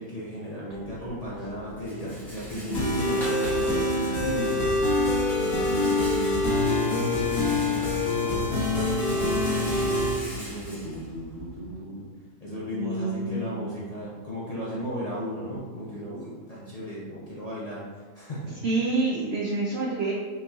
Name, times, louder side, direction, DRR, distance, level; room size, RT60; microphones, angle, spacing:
voice 1, 0.0-4.7 5.4-6.2 6.6-12.1 12.4-18.6, equal, 70° left, -8 dB, 0.3 m, -35 dB
Rattle, 0.7-11.7, equal, ahead, 0.6 m, -43 dB
voice 2, 2.5-2.9 5.8-6.5 12.8-13.5 18.6-20.1, right 3 dB, 70° right, -3 dB, 0.6 m, -28 dB
sound 1, 2.7-10.1, left 2 dB, 50° left, 1.2 m, -25 dB
4.4 x 3.1 x 2.3 m, 1.4 s
omnidirectional pair, 1.6 m